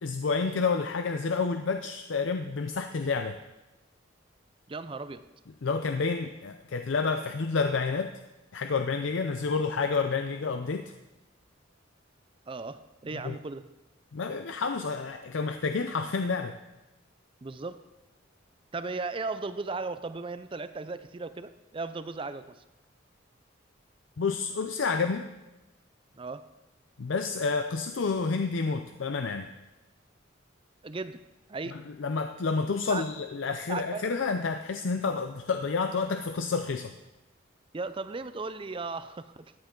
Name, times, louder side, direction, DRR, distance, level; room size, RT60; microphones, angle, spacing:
voice 1, 0.0-3.4 5.6-8.1 8.5-10.9 13.1-13.4 14.1-16.6 24.2-25.3 27.0-29.5 31.7-36.9, left 4 dB, 75° left, 7 dB, 0.5 m, -29 dB
voice 2, 4.7-5.2 12.5-13.6 17.4-17.8 18.7-22.6 26.2-26.4 30.8-31.2 31.5-31.8 32.9-33.0 33.7-34.1 37.7-39.3, right 3 dB, 25° right, 12 dB, 0.5 m, -36 dB
14.0 x 9.5 x 3.8 m, 1.0 s
head